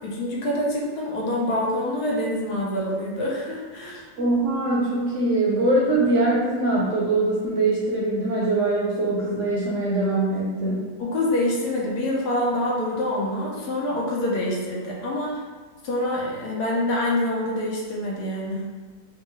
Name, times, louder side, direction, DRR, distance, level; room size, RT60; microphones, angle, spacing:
voice 1, 0.0-4.0 11.0-15.4 15.8-18.6, left 1 dB, 75° left, -4 dB, 1.2 m, -26 dB
voice 2, 4.2-10.8, right 2 dB, 65° right, -6 dB, 0.8 m, -22 dB
3.7 x 2.3 x 3.1 m, 1.4 s
omnidirectional pair, 1.8 m